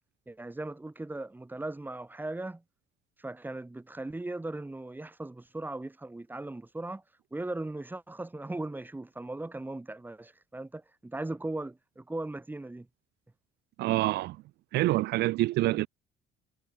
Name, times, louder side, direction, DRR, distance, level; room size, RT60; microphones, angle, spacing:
voice 1, 0.3-2.6 3.2-7.0 7.3-12.9 15.6-15.8, right 2 dB, 10° right, 4.8 m, -38 dB
voice 2, 13.8-14.4 14.7-15.9, right 17 dB, 80° right, 1.2 m, -26 dB
cardioid pair, 110°, 17 cm